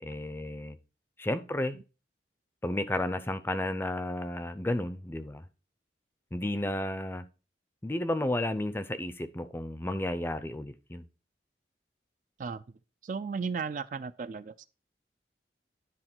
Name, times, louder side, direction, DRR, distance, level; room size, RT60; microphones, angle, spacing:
voice 1, 0.0-0.8 1.2-1.8 2.6-5.4 6.3-7.2 7.8-11.0, left 1 dB, 10° left, 0.5 m, -32 dB
voice 2, 13.0-14.7, right 5 dB, 45° right, 0.3 m, -35 dB
10.0 x 3.8 x 4.4 m
head